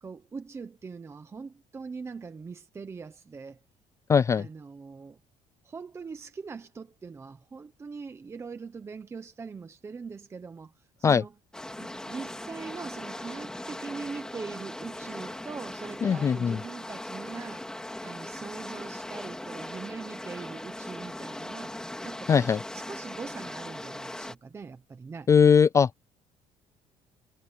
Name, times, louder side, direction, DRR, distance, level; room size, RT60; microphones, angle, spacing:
voice 1, 0.0-3.6 4.3-5.2 5.6-11.3 11.8-17.7 18.0-25.3, right 5 dB, 20° right, 1.0 m, -42 dB
voice 2, 4.1-4.5 11.0-11.2 16.0-16.6 22.3-22.6 25.3-26.0, left 6 dB, 20° left, 0.4 m, -20 dB
sound 1, 11.5-24.4, left 1 dB, 5° left, 2.2 m, -39 dB
cardioid pair, 165°, 14 cm